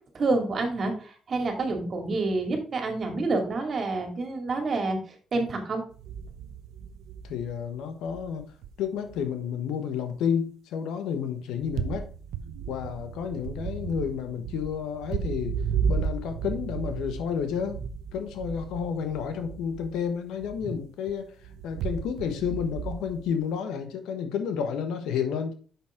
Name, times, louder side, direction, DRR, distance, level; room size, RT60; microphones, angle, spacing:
voice 1, 0.1-5.0 5.3-5.8 20.7-20.8, right 3 dB, 45° right, 2.3 m, -28 dB
sound 1, 5.9-7.8 8.1-8.7 9.1-9.2 11.6-20.1 20.4-23.4, right 6 dB, 85° right, 0.7 m, -34 dB
voice 2, 7.2-8.5 8.8-12.1 12.7-15.5 15.9-17.8 18.1-21.3 21.6-25.5, left 7 dB, 90° left, 1.3 m, -31 dB
7.4 x 6.0 x 3.6 m
cardioid pair, 90°, 0 cm